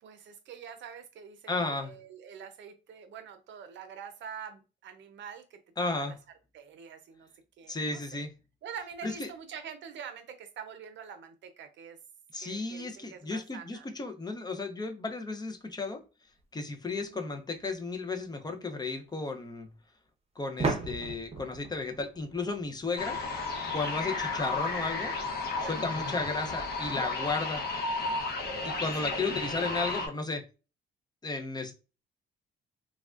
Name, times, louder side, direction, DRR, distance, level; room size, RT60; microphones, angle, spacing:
voice 1, 0.0-5.6 6.0-6.2 6.5-7.3 7.6-8.3 8.6-12.0 12.4-13.9 16.9-17.4 23.8-24.3 25.7-26.1 28.7-29.6, right 7 dB, 70° right, 0.6 m, -46 dB
voice 2, 1.5-1.9 5.8-6.1 7.7-8.3 9.0-9.3 12.3-16.0 16.5-19.7 20.4-23.2 23.7-25.1 25.6-27.6 28.6-30.4 31.2-31.7, left 3 dB, 20° left, 0.6 m, -34 dB
sound 1, 17.6-17.7 20.6-23.2, right 4 dB, 30° right, 0.8 m, -35 dB
sound 2, 23.0-30.1, left 3 dB, 50° left, 0.8 m, -33 dB
3.3 x 2.3 x 2.4 m
cardioid pair, 90°, 20 cm